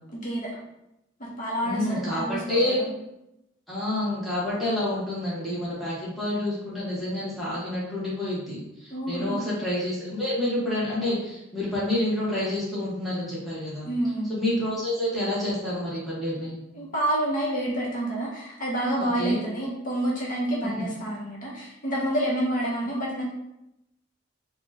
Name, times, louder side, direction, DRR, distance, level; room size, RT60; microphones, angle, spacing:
voice 1, 0.1-0.5 1.4-2.9 8.9-9.5 13.8-14.3 16.7-23.2, right 1 dB, 40° left, -5 dB, 0.8 m, -28 dB
voice 2, 1.6-2.8 3.7-13.9 14.3-16.6 19.0-19.4 20.6-20.9, left 1 dB, ahead, -9 dB, 1.0 m, -28 dB
4.0 x 2.2 x 2.8 m, 0.87 s
head